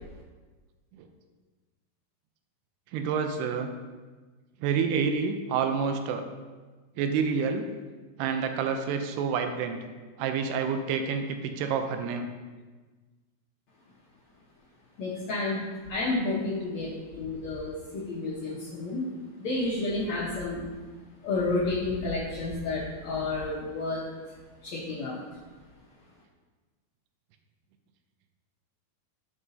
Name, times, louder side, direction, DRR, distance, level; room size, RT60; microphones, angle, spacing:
voice 1, 2.9-3.7 4.6-6.3 7.0-7.7 8.2-9.8 10.2-12.3, right 6 dB, 90° right, 6 dB, 2.7 m, -28 dB
voice 2, 15.0-15.6 15.9-19.1 19.4-20.7 21.2-24.0 24.6-25.2, left 2 dB, 75° left, -5 dB, 1.6 m, -30 dB
11.0 x 7.4 x 2.7 m, 1.3 s
omnidirectional pair, 4.7 m